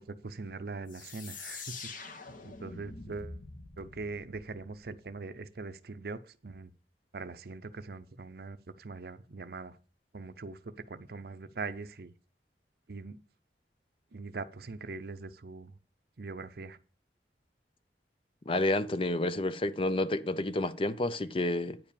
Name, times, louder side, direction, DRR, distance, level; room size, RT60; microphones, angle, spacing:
voice 1, 0.0-1.7 2.0-3.4 3.8-6.7 7.1-9.8 10.1-12.1 12.9-13.2 14.1-15.7 16.2-16.8, right 3 dB, 60° right, 0.6 m, -42 dB
sound 1, 0.9-5.5, left 4 dB, 50° left, 1.2 m, -46 dB
voice 2, 18.5-21.8, left 2 dB, 30° left, 0.5 m, -30 dB
9.5 x 4.9 x 6.9 m
head